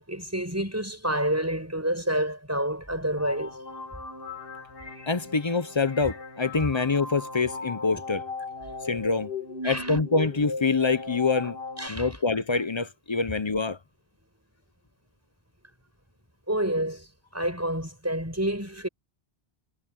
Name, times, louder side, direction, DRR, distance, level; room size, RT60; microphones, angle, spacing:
voice 1, 0.0-3.6 9.6-10.0 11.8-12.1 16.5-18.9, right 1 dB, 15° right, 6.9 m, -29 dB
sound 1, 3.2-11.9, left 3 dB, 60° left, 2.3 m, -37 dB
voice 2, 5.1-8.2 8.8-9.3 9.6-11.6 11.9-13.8, left 4 dB, 30° left, 0.6 m, -25 dB
omnidirectional pair, 1.1 m